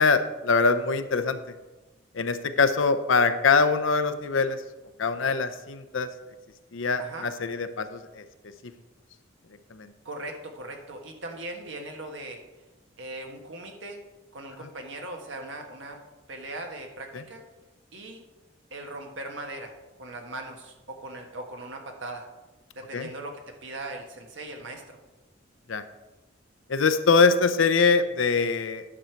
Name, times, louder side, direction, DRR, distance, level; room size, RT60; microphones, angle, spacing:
voice 1, 0.0-1.4 2.1-4.6 5.0-6.1 6.7-8.2 9.7-9.9 17.1-17.2 22.9-23.1 25.7-25.8 26.7-28.8, left 4 dB, 75° left, 10 dB, 0.7 m, -23 dB
voice 2, 7.0-7.3 10.0-12.4 13.0-14.0 14.3-16.0 16.3-17.4 17.9-18.2 18.7-19.7 20.0-22.3 22.7-25.0, right 2 dB, 65° right, 3 dB, 1.3 m, -39 dB
9.9 x 6.5 x 4.5 m, 1.1 s
head